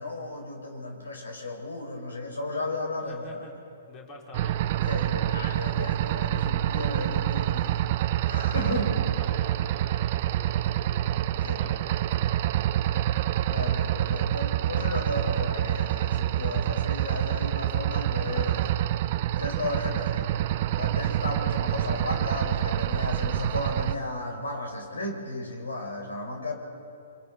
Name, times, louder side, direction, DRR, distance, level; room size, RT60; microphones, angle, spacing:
voice 1, 0.0-3.4 4.8-7.9 8.2-9.0 11.4-11.8 12.5-12.7 13.5-18.7 19.4-20.3 20.8-26.5, left 2 dB, 90° left, 1 dB, 4.6 m, -34 dB
voice 2, 3.0-3.6 3.9-4.6 9.1-11.1 11.5-11.9, left 2 dB, 25° left, 0 dB, 3.1 m, -47 dB
sound 1, 4.3-23.9, right 12 dB, 45° right, 0.5 m, -27 dB
25.0 x 25.0 x 4.1 m, 2.5 s
hypercardioid pair, 140°, 0 cm